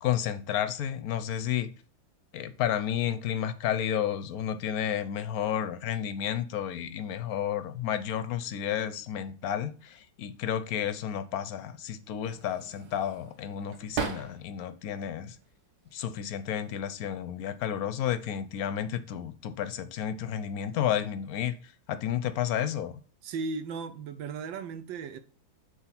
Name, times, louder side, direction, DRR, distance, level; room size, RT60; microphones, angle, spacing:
voice 1, 0.0-1.7 2.3-15.4 15.9-21.5 21.9-22.9, left 10 dB, 65° left, 0.9 m, -31 dB
sound 1, 12.2-14.7 15.1-16.0 16.9-17.3 17.6-18.4, right 7 dB, 55° right, 1.5 m, -39 dB
voice 2, 23.2-25.2, right 4 dB, 75° right, 1.5 m, -36 dB
7.3 x 3.5 x 5.8 m
omnidirectional pair, 2.2 m